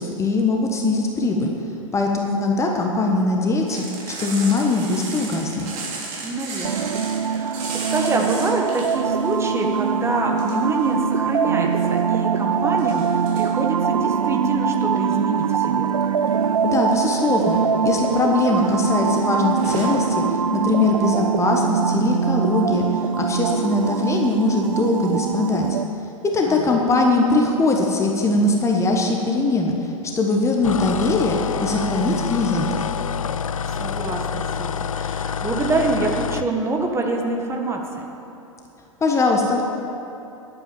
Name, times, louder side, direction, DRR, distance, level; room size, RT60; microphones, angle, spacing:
voice 1, 0.0-1.5 1.9-5.7 16.6-17.6 17.8-20.2 20.5-22.8 23.2-25.7 26.3-29.7 30.1-32.9 39.0-39.6, left 3 dB, 15° left, 1 dB, 1.3 m, -21 dB
sound 1, 3.7-9.4 9.7-10.9 11.5-12.0 12.8-13.5 15.0-15.7 16.2-16.4 16.8-17.6 17.9-18.2 18.5-18.7 19.0-19.2 19.6-19.9, right 4 dB, 40° right, 3.2 m, -35 dB
voice 2, 6.2-15.9 26.5-26.8 33.6-38.1, right 3 dB, 15° right, 1 dB, 1.6 m, -26 dB
sound 2, 6.6-25.8, right 6 dB, 75° right, 0.4 m, -23 dB
sound 3, 30.6-36.5, left 7 dB, 75° left, 0.4 m, -27 dB
11.0 x 8.6 x 9.1 m, 2.9 s
figure-of-eight pair, 100°, 18 cm